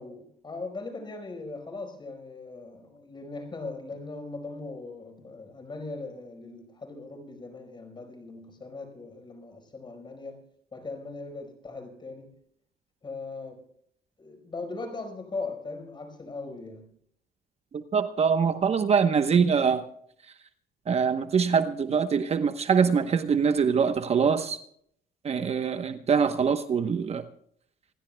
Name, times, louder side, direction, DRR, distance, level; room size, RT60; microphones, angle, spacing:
voice 1, 0.0-12.3 13.0-13.7 14.2-16.9, left 3 dB, 25° left, 4.8 m, -39 dB
voice 2, 17.9-19.8 20.9-24.6 25.2-27.2, right 6 dB, 40° right, 1.0 m, -24 dB
27.5 x 16.0 x 2.3 m
cardioid pair, 110°, 17 cm